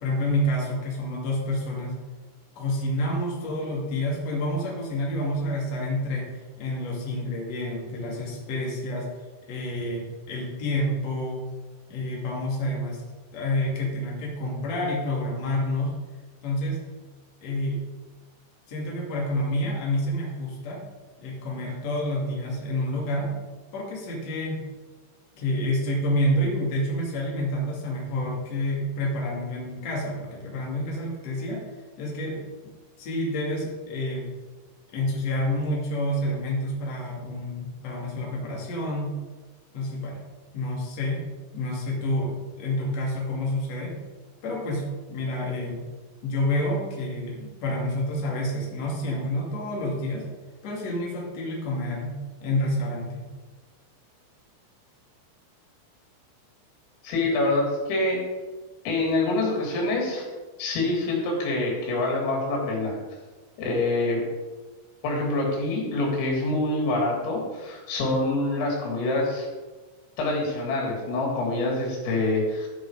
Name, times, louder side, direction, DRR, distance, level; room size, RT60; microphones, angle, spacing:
voice 1, 0.0-2.0 2.6-9.1 9.5-11.4 11.9-13.0 13.3-15.9 16.4-16.8 17.4-17.8 18.7-20.8 21.2-23.3 23.7-24.6 25.4-31.6 32.0-32.4 33.0-34.3 34.9-39.2 39.7-40.2 40.5-41.2 41.5-44.0 44.4-45.8 46.2-50.3 50.6-53.2, left 1 dB, 40° left, -2 dB, 2.9 m, -28 dB
voice 2, 57.0-58.2 58.9-60.3 60.6-63.0 63.6-64.2 65.0-69.5 70.2-72.7, left 2 dB, 85° left, -2 dB, 5.7 m, -26 dB
13.5 x 6.2 x 4.9 m, 1.3 s
omnidirectional pair, 5.7 m